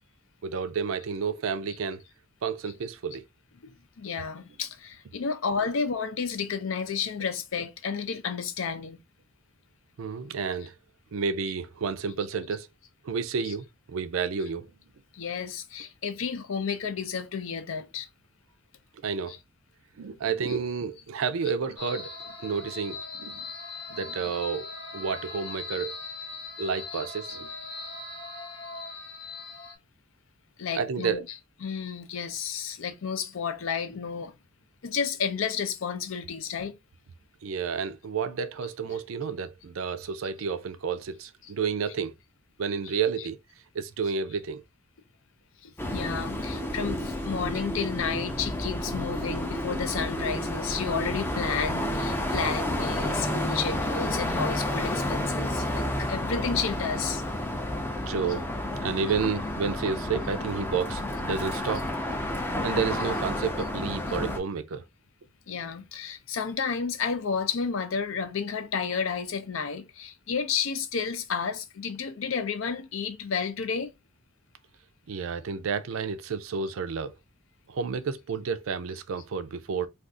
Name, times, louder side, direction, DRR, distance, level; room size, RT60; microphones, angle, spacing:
voice 1, 0.4-2.0 2.4-3.2 10.0-10.7 11.1-12.7 13.0-14.7 19.0-19.3 20.0-22.1 22.4-23.5 23.9-24.7 24.9-26.0 26.6-27.5 30.7-31.2 37.4-42.1 42.6-43.4 43.7-44.6 58.1-58.4 58.8-62.1 62.6-64.8 75.1-77.1 77.7-79.9, right 5 dB, 75° right, 0.4 m, -30 dB
voice 2, 3.6-9.0 13.4-13.6 15.1-18.1 19.3-19.4 27.3-27.4 30.6-34.3 34.8-36.8 38.9-39.0 41.4-41.5 42.8-43.0 45.6-57.2 61.7-61.8 64.1-64.2 65.5-73.9, left 6 dB, 70° left, 0.5 m, -32 dB
sound 1, 21.8-29.8, left 3 dB, 50° left, 0.9 m, -40 dB
sound 2, 45.8-64.4, left 1 dB, 10° left, 0.4 m, -30 dB
2.5 x 2.4 x 3.5 m
head